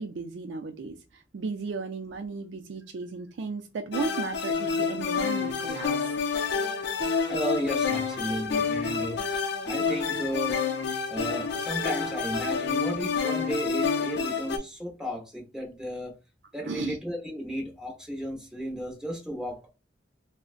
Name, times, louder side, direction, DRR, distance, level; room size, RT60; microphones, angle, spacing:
voice 1, 0.0-6.1 16.7-17.0, right 4 dB, 65° right, 0.4 m, -35 dB
sound 1, 3.9-14.6, left 5 dB, 60° left, 0.5 m, -28 dB
voice 2, 7.3-9.2 9.6-10.6 11.1-16.1 16.5-19.7, equal, 5° right, 0.9 m, -34 dB
3.7 x 2.1 x 2.4 m
head